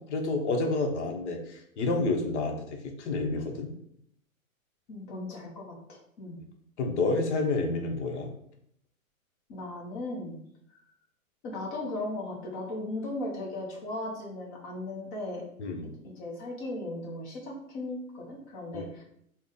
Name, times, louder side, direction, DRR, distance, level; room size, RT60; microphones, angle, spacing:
voice 1, 0.0-3.7 6.8-8.3 15.6-15.9 18.7-18.9, left 3 dB, 55° left, 2 dB, 0.9 m, -29 dB
voice 2, 4.9-6.4 9.5-10.4 11.4-15.4 15.8-19.0, left 2 dB, 25° left, -1 dB, 0.7 m, -37 dB
3.7 x 2.1 x 3.7 m, 0.70 s
hypercardioid pair, 150°, 42 cm